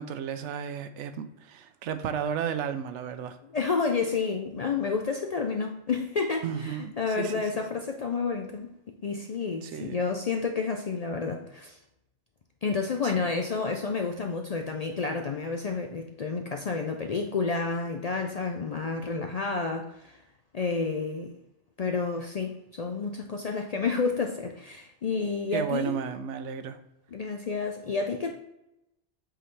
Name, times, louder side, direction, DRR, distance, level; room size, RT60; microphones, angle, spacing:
voice 1, 0.0-3.4 6.4-7.5 9.6-10.0 13.0-13.3 25.5-26.8, right 8 dB, 85° right, 9 dB, 0.9 m, -33 dB
voice 2, 3.5-11.8 12.6-20.2 20.5-21.3 21.8-26.1 27.1-28.3, left 4 dB, 55° left, 3 dB, 0.4 m, -30 dB
7.9 x 3.7 x 3.2 m, 0.89 s
omnidirectional pair, 1.2 m